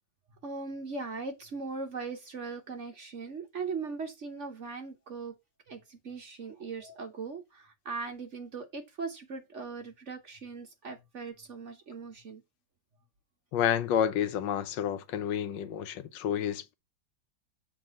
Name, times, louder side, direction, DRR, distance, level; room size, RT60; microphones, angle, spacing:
voice 1, 0.4-5.4 5.7-12.4, right 4 dB, 45° right, 1.1 m, -39 dB
voice 2, 13.5-16.7, left 9 dB, 75° left, 1.3 m, -30 dB
7.3 x 3.4 x 6.2 m
omnidirectional pair, 2.0 m